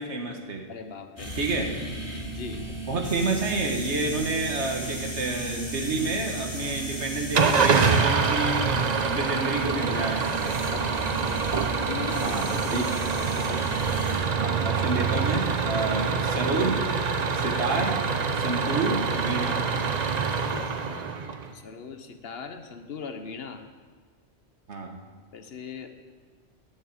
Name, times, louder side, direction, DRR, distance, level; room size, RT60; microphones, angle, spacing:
voice 1, 0.0-0.6 1.4-1.7 2.9-10.6 12.2-12.9 14.4-16.9 17.3-18.0 18.3-19.6 24.7-25.0, right 3 dB, 85° right, 2 dB, 1.7 m, -29 dB
voice 2, 0.7-1.4 2.1-2.6 10.7-11.1 11.8-13.0 13.3-13.6 21.5-23.6 25.3-25.9, left 6 dB, 65° left, 7 dB, 1.1 m, -39 dB
sound 1, 1.2-14.2, right 1 dB, 30° left, 3.7 m, -35 dB
Engine starting / Idling, 7.3-21.5, right 5 dB, 45° right, 0.7 m, -26 dB
8.9 x 7.2 x 8.6 m, 1.4 s
omnidirectional pair, 1.1 m